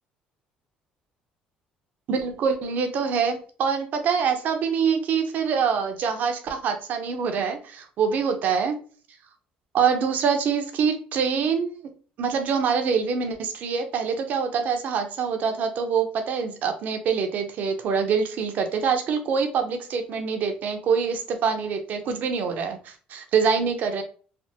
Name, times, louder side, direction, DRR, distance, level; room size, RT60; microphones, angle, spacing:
voice 1, 2.1-8.8 9.7-11.7 12.2-24.0, right 6 dB, 60° right, 6 dB, 0.7 m, -25 dB
3.3 x 2.1 x 2.8 m, 0.40 s
cardioid pair, 90°, 3 cm